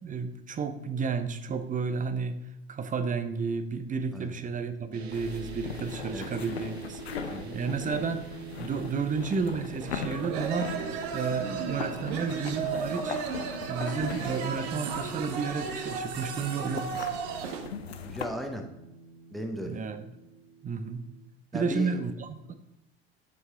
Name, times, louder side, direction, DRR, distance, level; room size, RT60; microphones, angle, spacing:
voice 1, 0.0-2.4 2.7-8.3 8.6-10.8 11.1-13.2 13.7-17.1 19.7-20.1 20.6-21.0 21.5-22.6, right 5 dB, 25° right, 10 dB, 0.7 m, -32 dB
sound 1, 4.9-21.3, right 6 dB, 85° right, 0.5 m, -47 dB
sound 2, 5.1-18.3, left 7 dB, 85° left, 0.6 m, -40 dB
voice 2, 7.3-7.8 18.0-18.6 19.3-19.8 21.5-21.9, left 1 dB, ahead, 4 dB, 1.0 m, -36 dB
sound 3, 9.8-17.7, right 6 dB, 60° right, 0.9 m, -35 dB
8.3 x 4.6 x 3.7 m, 0.93 s
figure-of-eight pair, 60°, 31 cm